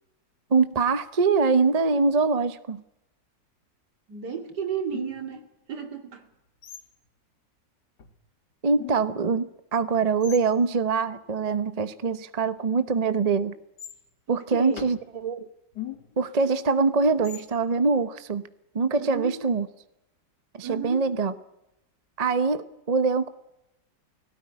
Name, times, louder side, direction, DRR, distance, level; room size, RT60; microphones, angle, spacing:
voice 1, 0.5-2.8 8.6-13.5 14.3-15.5 16.2-18.4 18.7-19.7 20.5-21.3 22.2-23.3, right 4 dB, 35° right, 12 dB, 0.7 m, -24 dB
voice 2, 4.1-6.3 14.3-14.9 19.0-19.3 20.6-21.0, right 7 dB, 60° right, 6 dB, 3.0 m, -33 dB
sound 1, 4.9-5.5 6.6-7.1 8.0-8.1 8.7-9.3 10.2-10.5 12.8-13.2 13.8-14.0 14.8-15.1 15.7-16.3 17.2-17.6, left 10 dB, 65° left, 2.0 m, -41 dB
20.0 x 17.5 x 9.7 m, 0.86 s
omnidirectional pair, 2.0 m